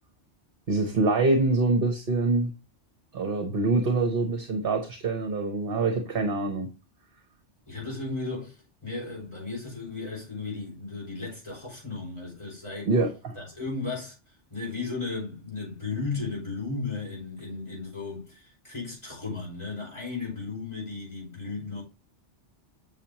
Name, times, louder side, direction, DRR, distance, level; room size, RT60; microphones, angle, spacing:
voice 1, 0.7-2.5 3.1-6.7 12.9-13.4, right 3 dB, 55° right, 1.2 m, -25 dB
voice 2, 7.7-12.9 13.4-14.2 14.5-21.8, left 3 dB, 25° left, 5.4 m, -35 dB
7.5 x 6.9 x 2.9 m
omnidirectional pair, 1.2 m